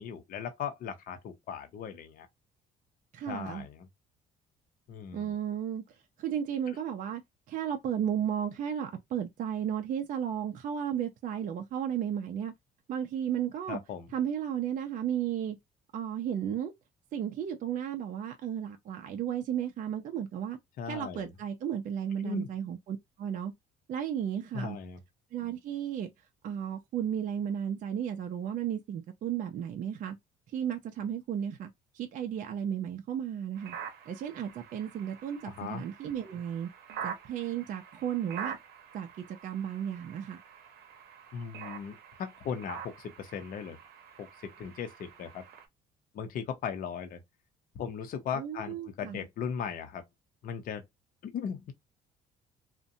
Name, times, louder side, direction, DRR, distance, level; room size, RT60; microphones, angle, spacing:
voice 1, 0.0-2.3 3.3-3.9 4.9-5.3 13.7-14.1 20.8-21.3 22.2-22.5 24.5-25.0 35.4-35.8 41.3-43.8 44.2-45.4 46.1-47.2 47.7-50.0 50.4-50.8 51.2-51.7, left 7 dB, 55° left, 0.6 m, -38 dB
voice 2, 3.1-3.6 5.1-7.2 7.5-12.5 12.9-13.8 14.1-15.6 15.9-16.7 17.1-20.6 20.9-23.5 23.9-24.8 25.3-26.1 26.4-30.2 30.5-33.8 34.1-36.7 37.0-38.6 38.9-40.4 48.3-49.3, right 9 dB, 50° right, 0.5 m, -34 dB
sound 1, 33.6-45.7, right 8 dB, 75° right, 0.8 m, -46 dB
2.5 x 2.1 x 2.6 m
cardioid pair, 110°, 17 cm